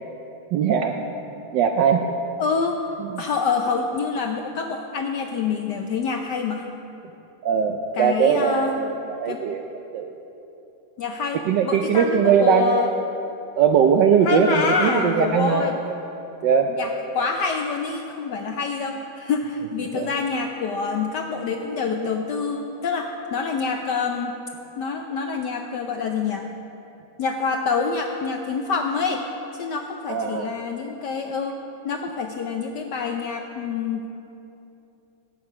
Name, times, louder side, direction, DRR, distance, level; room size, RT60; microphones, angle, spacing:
voice 1, 0.5-1.0 1.5-2.1 3.1-3.2 7.4-9.6 9.9-10.1 11.5-12.9 13.6-15.7 16.4-16.7 19.9-20.1 30.1-30.5, right 7 dB, 75° right, 4 dB, 1.0 m, -20 dB
voice 2, 2.4-2.9 3.2-6.6 7.9-8.8 9.3-9.4 11.0-12.9 14.2-15.7 16.7-24.3 24.8-26.5 27.2-29.2 29.6-31.6 31.8-34.1, left 5 dB, 75° left, 4 dB, 1.0 m, -26 dB
12.0 x 8.6 x 6.0 m, 2.9 s
omnidirectional pair, 2.4 m